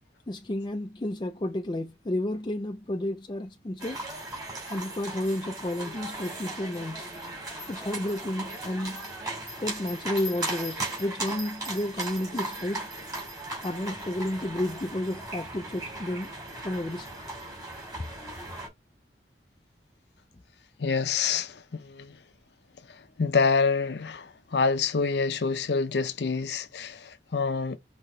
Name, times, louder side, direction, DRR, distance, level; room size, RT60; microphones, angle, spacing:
voice 1, 0.3-4.0 4.7-7.1 7.7-9.0 9.6-12.9 13.6-16.3 16.6-17.1, left 1 dB, 25° left, 0.4 m, -31 dB
sound 1, 3.8-18.7, right 2 dB, 20° right, 2.3 m, -37 dB
voice 2, 20.8-22.2 23.2-27.8, left 5 dB, 75° left, 0.7 m, -27 dB
5.6 x 2.9 x 3.2 m
head